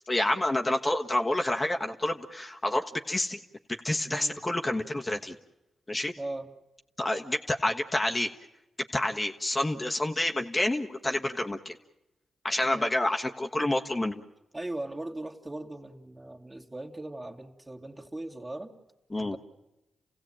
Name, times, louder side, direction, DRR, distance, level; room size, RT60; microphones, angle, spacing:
voice 1, 0.1-3.4 3.8-5.3 5.9-6.1 7.0-8.3 8.9-11.7 12.4-14.2 19.1-19.4, left 1 dB, 25° left, 3 dB, 1.4 m, -28 dB
voice 2, 6.2-6.5 12.6-12.9 14.5-18.7 19.2-19.4, right 2 dB, 25° right, 3 dB, 2.4 m, -39 dB
29.0 x 16.5 x 8.9 m, 0.94 s
supercardioid pair, 50°, 0 cm